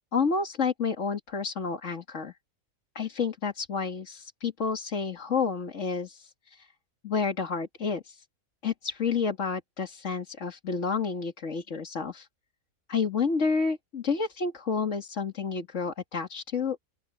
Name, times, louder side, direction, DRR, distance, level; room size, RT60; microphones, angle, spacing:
voice 1, 0.1-2.3 3.0-6.7 7.0-8.2 8.6-12.3 12.9-16.8, left 5 dB, 60° left, 2.4 m, -30 dB
open air
omnidirectional pair, 1.5 m